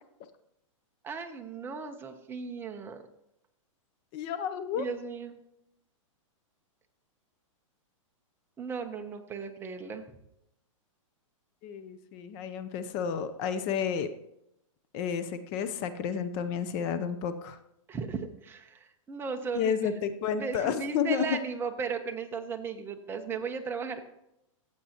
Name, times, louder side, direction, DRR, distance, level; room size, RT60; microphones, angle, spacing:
voice 1, 1.0-3.0 4.7-5.4 8.6-10.1 17.9-19.9 20.4-24.0, right 5 dB, 15° right, 5 dB, 0.7 m, -36 dB
voice 2, 4.1-4.8 11.6-14.1 14.9-17.6 19.5-21.4, left 7 dB, 35° left, 11 dB, 0.6 m, -31 dB
15.0 x 7.6 x 2.9 m, 0.82 s
hypercardioid pair, 150°, 17 cm